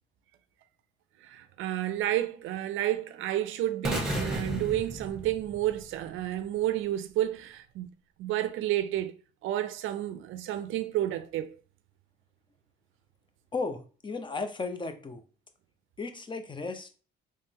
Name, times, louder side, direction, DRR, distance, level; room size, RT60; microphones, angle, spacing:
voice 1, 1.2-7.9 8.2-9.2 9.4-11.5, right 13 dB, 80° right, 0.4 m, -31 dB
sound 1, 3.8-5.9, right 1 dB, 5° right, 1.1 m, -33 dB
voice 2, 13.5-15.2 16.0-16.9, left 3 dB, 25° left, 0.6 m, -35 dB
3.6 x 3.2 x 2.8 m
cardioid pair, 90°, 20 cm